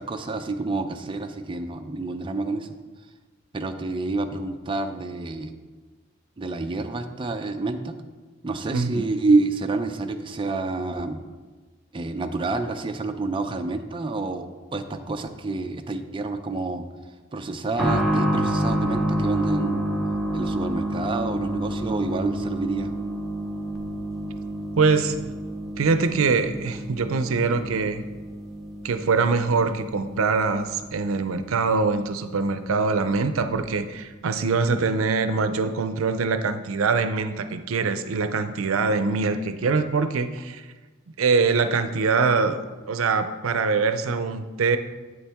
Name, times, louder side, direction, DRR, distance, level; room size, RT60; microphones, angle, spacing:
voice 1, 0.0-2.7 3.5-5.5 6.4-8.0 8.4-11.2 11.9-16.9 17.3-19.8 20.3-23.0, right 3 dB, 25° right, 6 dB, 0.5 m, -28 dB
voice 2, 8.7-9.0 24.7-25.2 25.8-28.0 28.8-40.6 41.2-44.8, right 4 dB, 85° right, 10 dB, 0.5 m, -23 dB
sound 1, 17.8-32.2 32.5-32.6 33.5-33.6, right 1 dB, ahead, 1.0 m, -29 dB
8.3 x 7.1 x 3.5 m, 1.3 s
head